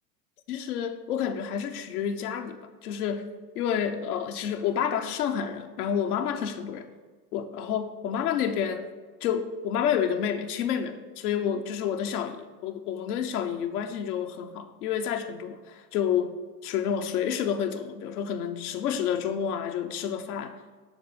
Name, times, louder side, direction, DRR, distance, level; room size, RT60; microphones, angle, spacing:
voice 1, 0.5-6.9 7.3-8.9 9.2-16.3 16.6-20.6, left 8 dB, 60° left, 6 dB, 1.0 m, -29 dB
11.0 x 3.9 x 6.7 m, 1.4 s
hypercardioid pair, 90°, 50 cm